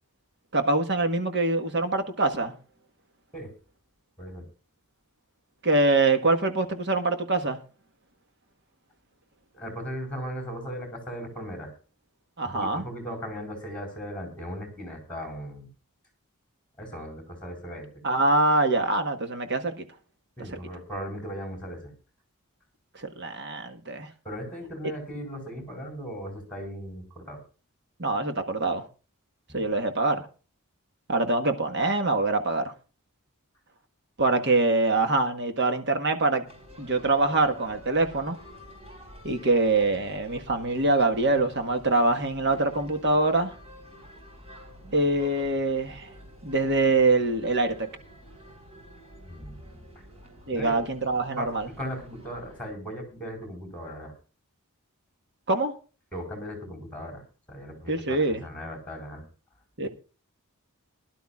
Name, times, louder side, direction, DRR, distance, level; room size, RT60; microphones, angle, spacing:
voice 1, 0.5-2.5 5.6-7.6 12.4-12.8 18.0-19.8 20.5-20.6 23.0-24.1 28.0-28.8 29.5-30.3 31.1-32.7 34.2-36.4 36.8-38.4 39.2-43.5 44.9-46.1 46.4-47.9 50.5-51.6 55.5-55.7 57.9-58.4 59.8-59.9, right 2 dB, 50° right, 1.5 m, -24 dB
voice 2, 9.5-11.7 12.4-15.7 16.8-17.9 20.4-21.9 24.2-27.4 29.5-29.7 49.3-49.8 50.5-50.8 51.4-54.1 56.1-59.2, equal, 5° left, 4.5 m, -37 dB
sound 1, 36.4-52.7, equal, 30° right, 4.4 m, -48 dB
22.5 x 11.5 x 2.4 m
head